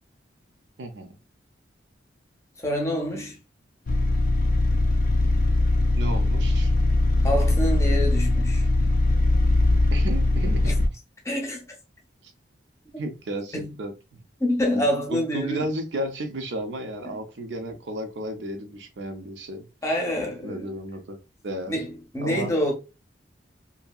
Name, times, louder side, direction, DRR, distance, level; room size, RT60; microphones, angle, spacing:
voice 1, 0.8-1.2 6.0-6.7 9.9-10.8 12.2-12.3 13.0-14.2 14.7-14.9 15.1-19.7 20.4-21.2 21.4-21.8 22.2-22.5, right 1 dB, 70° right, 0.5 m, -33 dB
voice 2, 2.6-3.4 7.2-8.7 10.7-10.8 11.2-11.6 13.5-13.7 14.4-15.6 19.8-20.7 21.7-22.7, equal, 15° left, 0.7 m, -26 dB
sound 1, 3.9-10.9, left 2 dB, 45° left, 0.3 m, -21 dB
2.8 x 2.6 x 2.3 m
head